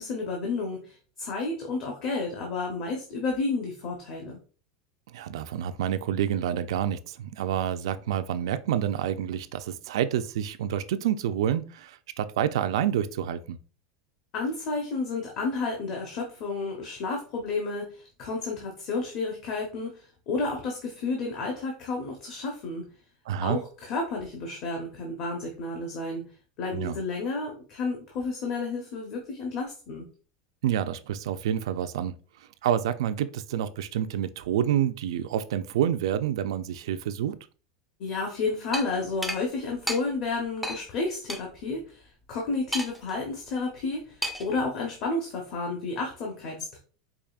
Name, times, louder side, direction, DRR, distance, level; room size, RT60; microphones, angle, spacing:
voice 1, 0.0-4.4 14.3-22.8 23.4-26.2 26.6-30.0 38.0-46.8, left 3 dB, 35° left, 0 dB, 0.7 m, -31 dB
voice 2, 5.1-13.6 23.3-23.6 26.7-27.0 30.6-32.2 32.6-37.4, right 10 dB, 85° right, 11 dB, 0.3 m, -28 dB
sound 1, 38.7-38.9 39.2-39.4 39.9-40.0 40.6-40.8 41.3-41.4 42.7-43.1 44.2-44.5, equal, ahead, 0.3 m, -31 dB
4.8 x 2.9 x 2.4 m, 0.38 s
supercardioid pair, 175°, 3 cm